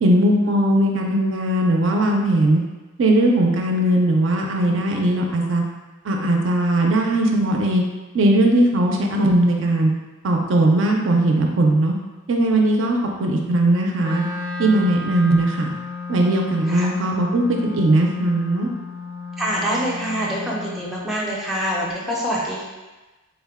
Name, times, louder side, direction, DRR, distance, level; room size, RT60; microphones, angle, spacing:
voice 1, 0.0-2.6 3.0-5.6 6.1-7.8 8.1-9.9 10.2-11.9 12.3-14.2 14.6-15.7 16.1-17.4 17.7-18.7, right 1 dB, 65° right, 1 dB, 0.4 m, -19 dB
Wind instrument woodwind instrument, 14.0-21.2, left 4 dB, 55° left, 0.6 m, -32 dB
voice 2, 19.4-22.6, equal, ahead, -6 dB, 0.5 m, -25 dB
3.6 x 2.1 x 3.4 m, 1.2 s
head